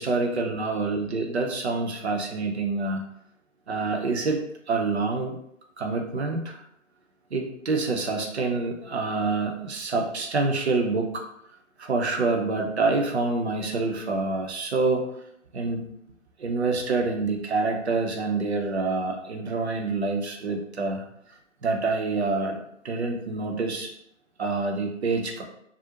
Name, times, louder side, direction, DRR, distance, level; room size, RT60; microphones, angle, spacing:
voice 1, 0.0-3.0 3.7-5.4 5.8-6.6 7.3-11.1 11.8-15.1 15.5-15.8 16.4-21.0 21.6-23.9 24.4-25.4, right 3 dB, 55° right, 2 dB, 0.6 m, -27 dB
2.4 x 2.0 x 2.8 m, 0.74 s
figure-of-eight pair, 140°, 39 cm